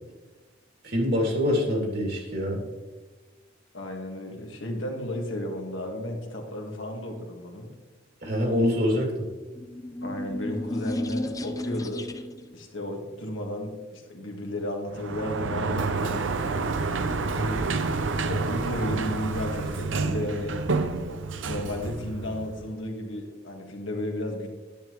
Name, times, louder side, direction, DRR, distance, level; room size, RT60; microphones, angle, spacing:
voice 1, 0.8-2.6 8.2-9.1 17.4-17.8, left 1 dB, 55° right, 0 dB, 2.6 m, -25 dB
voice 2, 3.7-7.7 10.0-12.1 12.5-16.6 18.3-20.5 21.4-24.5, left 1 dB, 75° left, 1 dB, 1.7 m, -33 dB
sound 1, 9.6-12.5, left 1 dB, 20° left, 0.5 m, -33 dB
Sliding door, 14.9-22.7, right 3 dB, 70° right, 0.7 m, -29 dB
10.5 x 9.0 x 3.1 m, 1.3 s
head